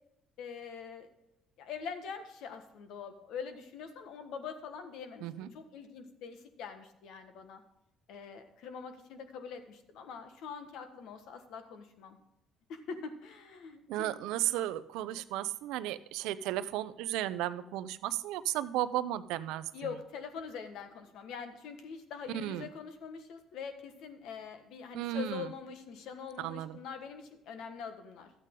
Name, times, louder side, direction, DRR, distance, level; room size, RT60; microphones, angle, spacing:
voice 1, 0.4-1.1 1.6-7.6 8.1-12.2 12.7-14.1 19.7-28.3, left 6 dB, 75° left, 8 dB, 1.3 m, -44 dB
voice 2, 13.9-19.7 22.3-22.7 24.9-25.5 26.4-26.8, right 13 dB, 85° right, 14 dB, 0.5 m, -34 dB
12.5 x 8.3 x 3.8 m, 0.87 s
cardioid pair, 90°, 0 cm